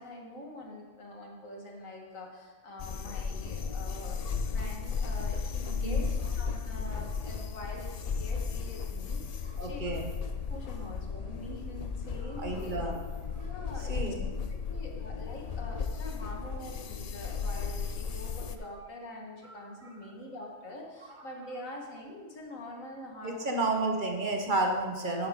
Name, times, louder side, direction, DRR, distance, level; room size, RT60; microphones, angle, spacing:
voice 1, 0.0-10.0 10.5-12.7 13.4-14.0 14.7-23.6, left 1 dB, 90° left, 0 dB, 2.0 m, -45 dB
sound 1, 2.8-18.6, left 5 dB, 70° left, 0.3 m, -35 dB
voice 2, 9.6-10.1 12.4-13.0 13.9-14.2 19.4-19.5 23.2-25.3, right 2 dB, 40° right, 2 dB, 1.3 m, -31 dB
10.5 x 9.5 x 3.7 m, 1.4 s
omnidirectional pair, 1.4 m